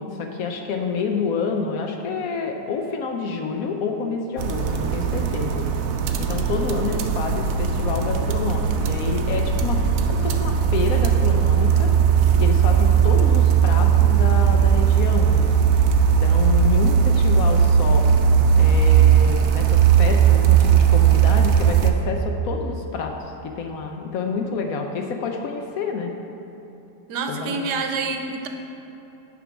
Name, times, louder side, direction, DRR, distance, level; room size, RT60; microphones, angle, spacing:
voice 1, 0.0-5.7 6.2-11.9 12.4-15.6 16.1-18.1 18.6-23.1 23.4-26.1 27.3-27.6, left 5 dB, 70° left, 3 dB, 0.9 m, -28 dB
sound 1, 4.4-21.9, right 8 dB, 70° right, 0.8 m, -18 dB
voice 2, 27.1-28.5, right 4 dB, 90° right, 4 dB, 1.3 m, -27 dB
9.4 x 3.7 x 5.8 m, 2.9 s
omnidirectional pair, 1.8 m